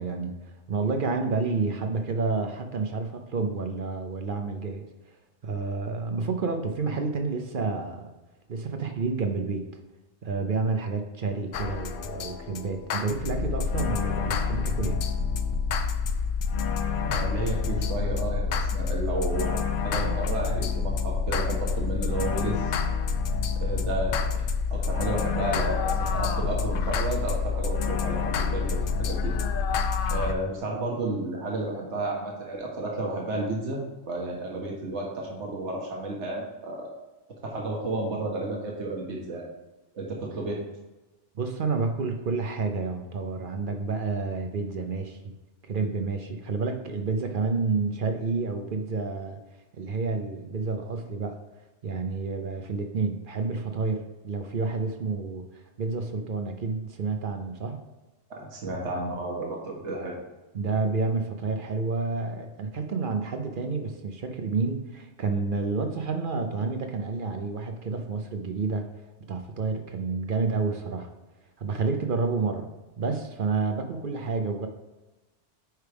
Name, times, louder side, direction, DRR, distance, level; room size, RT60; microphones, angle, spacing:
voice 1, 0.0-4.9 5.4-8.1 8.5-9.7 10.2-15.0 41.3-45.3 45.6-49.4 49.7-51.4 51.8-57.8 60.5-68.9 69.3-71.1 71.6-72.7 73.0-74.7, right 4 dB, 55° right, 5 dB, 0.8 m, -29 dB
sound 1, 11.5-30.3, left 5 dB, 60° left, 0.6 m, -27 dB
voice 2, 17.0-22.7 23.6-24.4 24.7-29.3 30.1-33.8 34.1-36.9 37.4-39.4 39.9-40.6 58.3-60.1, right 2 dB, 70° right, -1 dB, 1.5 m, -32 dB
9.1 x 4.7 x 3.5 m, 1.1 s
omnidirectional pair, 1.2 m